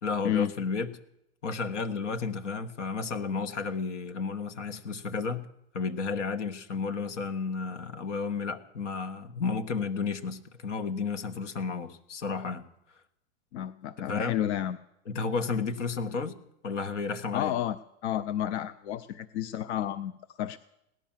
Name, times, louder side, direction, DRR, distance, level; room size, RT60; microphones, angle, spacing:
voice 1, 0.0-1.0 1.4-5.5 5.7-12.6 14.1-14.4 15.1-16.4 16.6-17.5, left 4 dB, 90° left, 9 dB, 1.6 m, -32 dB
voice 2, 13.5-14.8 17.3-17.8 18.0-20.6, left 11 dB, 70° left, 14 dB, 0.7 m, -31 dB
17.5 x 11.0 x 7.4 m, 0.84 s
supercardioid pair, 130°, 35 cm